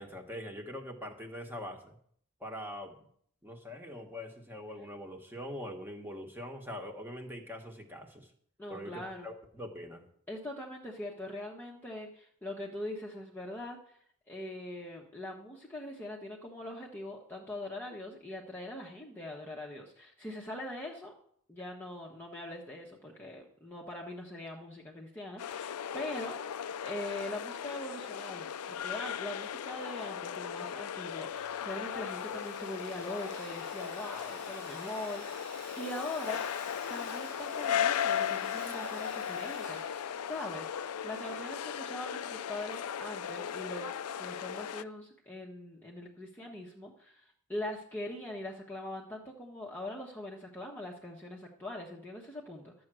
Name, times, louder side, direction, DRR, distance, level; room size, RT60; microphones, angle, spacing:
voice 1, 0.0-2.0 2.4-3.1 3.4-8.3 8.7-10.0, left 1 dB, 10° right, 3 dB, 1.4 m, -43 dB
voice 2, 8.6-9.3 10.3-13.8 14.3-21.1 21.5-26.5 26.8-36.4 36.9-52.7, left 1 dB, 10° left, -2 dB, 1.1 m, -42 dB
sound 1, 25.4-44.8, left 8 dB, 80° left, 0.4 m, -37 dB
Sawing, 31.3-40.8, right 9 dB, 80° right, 0.8 m, -55 dB
12.5 x 7.8 x 6.2 m, 0.64 s
head